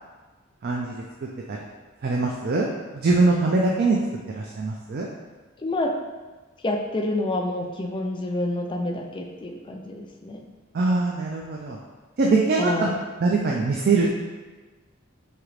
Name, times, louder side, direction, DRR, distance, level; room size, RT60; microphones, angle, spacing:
voice 1, 0.6-1.6 2.0-2.7 2.9-4.0 4.4-5.1 10.7-11.8 12.2-12.9 13.2-14.1, right 3 dB, 50° right, -1 dB, 0.4 m, -22 dB
voice 2, 5.6-5.9 6.6-10.4 12.6-13.0, left 2 dB, 25° left, 2 dB, 0.4 m, -28 dB
4.9 x 2.9 x 3.1 m, 1.3 s
head